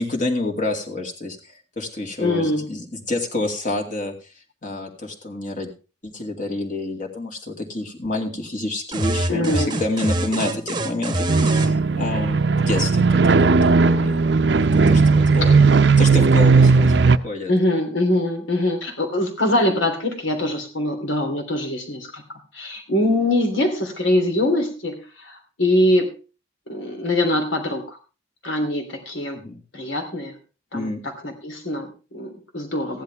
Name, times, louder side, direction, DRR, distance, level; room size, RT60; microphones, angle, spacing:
voice 1, 0.0-4.1 4.6-5.7 6.0-14.3 14.9-15.5 16.0-17.5 29.3-29.6 30.7-31.0, left 2 dB, 40° left, 1 dB, 2.3 m, -28 dB
voice 2, 2.2-2.7 9.3-9.8 17.5-26.1 26.7-28.0 28.4-29.4 29.7-30.3 30.7-33.0, left 1 dB, 85° left, 5 dB, 3.1 m, -23 dB
sound 1, 8.9-11.7, right 1 dB, 25° right, 1.0 m, -25 dB
sound 2, 11.3-17.2, right 4 dB, 60° right, 0.6 m, -16 dB
15.5 x 11.0 x 3.4 m, 0.33 s
head